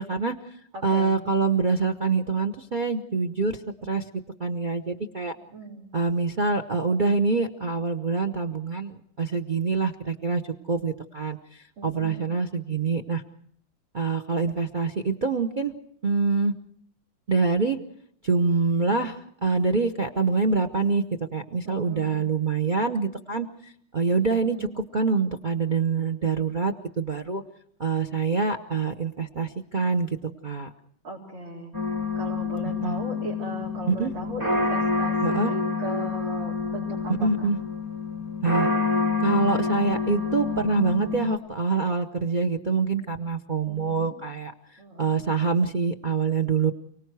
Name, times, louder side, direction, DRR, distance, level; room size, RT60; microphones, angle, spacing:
voice 1, 0.0-0.6 0.8-4.0 4.4-5.3 5.9-10.4 10.7-13.2 13.9-15.7 16.0-16.5 17.3-17.8 18.2-21.0 21.3-27.4 27.8-30.7 32.8-33.0 33.9-34.1 35.2-35.5 37.2-37.6 38.4-38.7 39.2-46.7, right 4 dB, 55° right, 7 dB, 0.5 m, -25 dB
voice 2, 0.7-1.2 5.4-5.9 11.8-12.2 21.6-22.2 24.3-24.7 31.0-31.7 32.1-37.5 43.7-44.1 44.8-45.2, right 1 dB, 85° right, -7 dB, 5.1 m, -38 dB
sound 1, 31.7-41.4, left 4 dB, 15° right, 1.0 m, -27 dB
29.5 x 19.0 x 4.7 m, 0.66 s
omnidirectional pair, 2.2 m